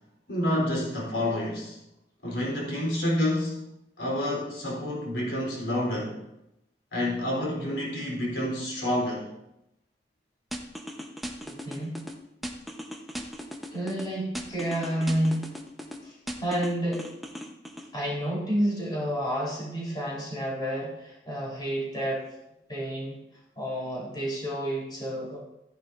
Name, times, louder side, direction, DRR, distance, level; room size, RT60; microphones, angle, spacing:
voice 1, 0.3-1.8 2.2-3.6 4.0-6.2 6.9-9.3, left 1 dB, 85° left, -4 dB, 3.7 m, -28 dB
sound 1, 10.5-12.1 12.4-14.1 14.4-16.0 16.3-17.9, equal, ahead, 1.0 m, -37 dB
voice 2, 11.5-12.0 13.7-15.5 16.0-17.1 17.9-22.2 22.7-23.2 23.6-25.4, right 1 dB, 25° left, -5 dB, 3.9 m, -30 dB
14.5 x 10.5 x 2.6 m, 0.86 s
head